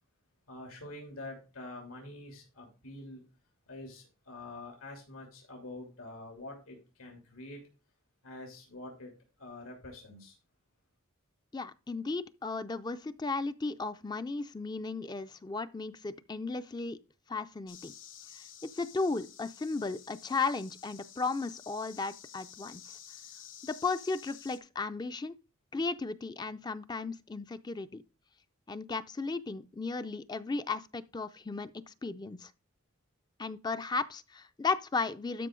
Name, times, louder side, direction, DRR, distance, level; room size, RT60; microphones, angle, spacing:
voice 1, 0.5-3.2 3.7-7.6 8.2-10.4, left 2 dB, 85° left, 3.0 m, -46 dB
voice 2, 11.5-17.0 17.3-17.9 18.3-23.0 23.6-25.3 25.7-28.0 28.7-32.5 33.4-35.5, left 4 dB, 20° left, 0.4 m, -35 dB
sound 1, 17.7-24.6, left 10 dB, 65° left, 1.8 m, -52 dB
12.5 x 5.5 x 3.7 m
head